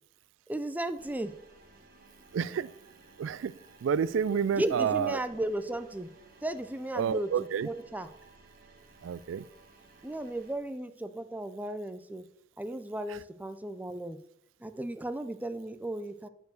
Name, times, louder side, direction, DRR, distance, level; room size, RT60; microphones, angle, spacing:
voice 1, 0.5-1.3 4.4-6.1 6.4-7.3 7.6-8.1 10.0-12.2 12.6-14.2 14.6-16.3, right 1 dB, 10° right, 10 dB, 0.5 m, -35 dB
sound 1, 1.0-10.6, right 3 dB, 50° right, 1.5 m, -57 dB
voice 2, 2.3-2.7 3.2-5.2 6.9-7.7 9.0-9.5 13.1-13.2, right 7 dB, 80° right, 18 dB, 0.3 m, -30 dB
9.4 x 4.5 x 6.4 m, 0.76 s
head